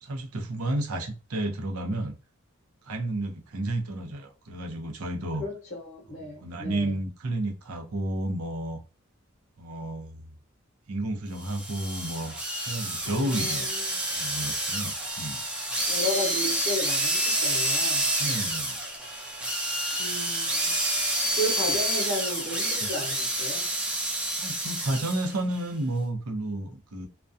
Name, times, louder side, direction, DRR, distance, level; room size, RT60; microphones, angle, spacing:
voice 1, 0.0-2.1 2.8-5.5 6.2-8.8 9.6-10.3 10.9-12.4 12.6-13.7 14.1-15.4 18.2-18.8 22.8-22.9 24.4-27.1, right 1 dB, 85° right, 0.6 m, -31 dB
voice 2, 5.4-7.0 13.0-14.0 15.9-18.1 20.0-20.7 21.3-23.6, left 1 dB, 50° left, 0.7 m, -33 dB
sound 1, 11.4-25.3, right 1 dB, 5° right, 0.5 m, -28 dB
2.3 x 2.2 x 2.5 m
head